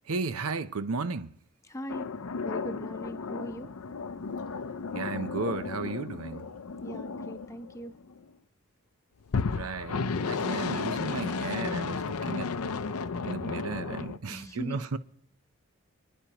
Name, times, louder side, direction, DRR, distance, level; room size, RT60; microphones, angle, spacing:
voice 1, 0.1-1.3 4.9-6.4 9.5-12.5 13.2-15.0, right 4 dB, 80° right, 0.7 m, -34 dB
voice 2, 1.6-2.1 2.4-3.7 6.8-8.0 14.3-14.9, equal, 15° left, 0.7 m, -40 dB
sound 1, 1.9-8.2 9.3-14.2, left 5 dB, 85° left, 0.6 m, -34 dB
28.5 x 10.0 x 3.0 m
head